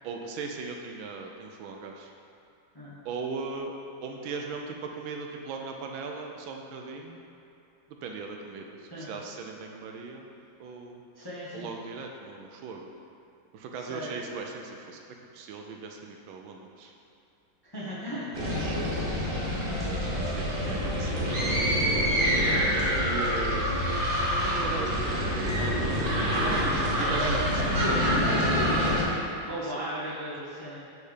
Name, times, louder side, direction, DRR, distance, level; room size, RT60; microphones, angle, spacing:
voice 1, 0.0-2.1 3.0-3.7 4.0-7.2 8.0-10.3 10.6-11.0 11.5-12.9 13.5-15.0 15.3-16.9 18.6-19.3 19.8-21.3 23.0-23.7 24.4-26.0 26.6-27.6 29.6-29.8, right 4 dB, 80° right, 2 dB, 1.4 m, -38 dB
voice 2, 11.2-11.7 13.9-14.1 17.7-18.3 20.6-20.7 22.3-22.7 26.4-26.6 27.0-30.8, right 1 dB, 20° left, -9 dB, 0.7 m, -36 dB
sound 1, 18.3-29.0, equal, 35° right, 0.9 m, -26 dB
6.5 x 4.2 x 5.0 m, 2.8 s
omnidirectional pair, 2.2 m